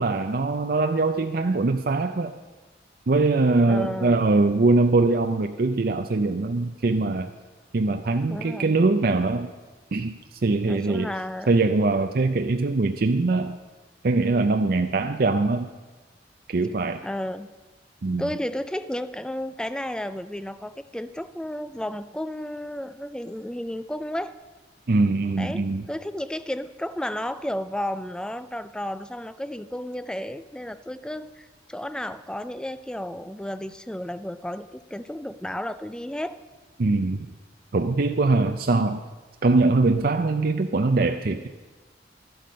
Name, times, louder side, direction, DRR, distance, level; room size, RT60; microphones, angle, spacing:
voice 1, 0.0-2.3 3.1-7.3 7.7-9.5 9.9-11.1 11.5-13.6 14.0-15.7 16.5-17.0 18.0-18.3 24.9-25.9 36.8-37.3 37.7-39.0 39.4-41.5, right 3 dB, 55° right, 7 dB, 0.5 m, -22 dB
voice 2, 3.7-4.2 8.3-8.8 10.6-11.5 17.0-17.5 18.2-24.4 25.4-36.4, left 1 dB, 5° left, 13 dB, 0.4 m, -33 dB
13.0 x 11.5 x 5.3 m, 1.3 s
head